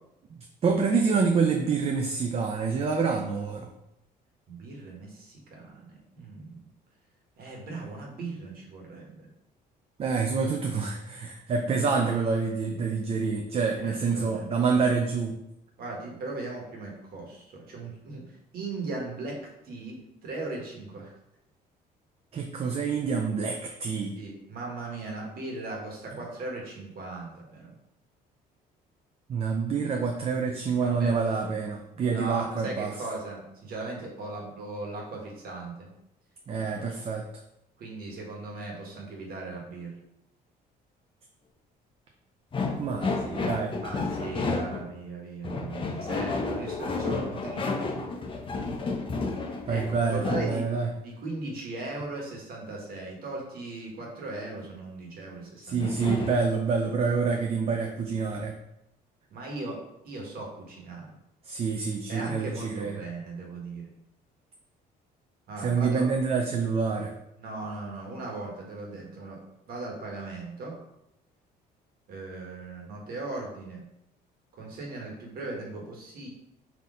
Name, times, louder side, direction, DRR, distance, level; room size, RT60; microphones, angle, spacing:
voice 1, 0.6-3.7 10.0-15.4 22.3-24.1 29.3-32.9 36.5-37.3 42.8-43.8 49.7-50.9 55.6-58.6 61.5-63.0 65.6-67.1, right 5 dB, 35° right, 3 dB, 0.4 m, -27 dB
voice 2, 4.5-6.7 7.4-9.3 13.8-14.8 15.8-18.2 18.5-21.1 24.2-27.7 30.8-31.2 32.1-35.9 36.6-36.9 37.8-39.9 43.8-47.9 49.7-50.7 51.0-56.0 59.3-61.1 62.1-63.9 65.5-66.1 67.3-69.4 69.7-70.8 72.1-73.8 74.5-76.3, right 2 dB, 65° right, -1 dB, 1.4 m, -38 dB
sound 1, 42.5-44.9 45.4-50.5 55.8-56.4, left 3 dB, 30° left, 0.6 m, -31 dB
4.1 x 2.8 x 3.7 m, 0.84 s
cardioid pair, 110°, 17 cm